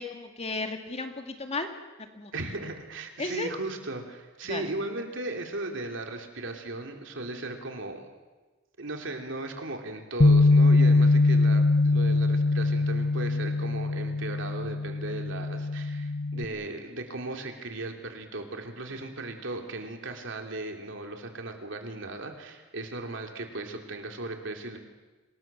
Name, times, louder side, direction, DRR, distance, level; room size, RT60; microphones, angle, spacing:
voice 1, 0.0-1.7 2.1-2.3 3.2-3.5 4.5-4.7, left 3 dB, 30° left, 5 dB, 2.2 m, -34 dB
voice 2, 2.3-8.1 8.8-24.8, right 2 dB, 70° right, 3 dB, 3.1 m, -37 dB
Bass guitar, 10.2-16.5, left 3 dB, 50° left, 1.2 m, -22 dB
26.5 x 19.5 x 7.5 m, 1.2 s
head